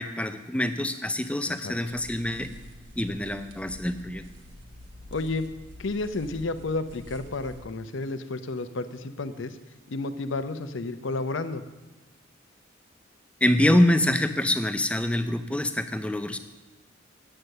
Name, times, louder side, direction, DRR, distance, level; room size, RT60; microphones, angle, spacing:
voice 1, 0.0-2.5 3.0-4.2 13.4-16.4, left 1 dB, 5° left, 9 dB, 0.4 m, -25 dB
sound 1, 1.9-7.6, left 1 dB, 60° right, 1.3 m, -47 dB
voice 2, 5.1-5.5 5.8-9.6 9.9-11.6, left 3 dB, 70° left, 11 dB, 0.7 m, -31 dB
8.9 x 8.0 x 6.6 m, 1.1 s
head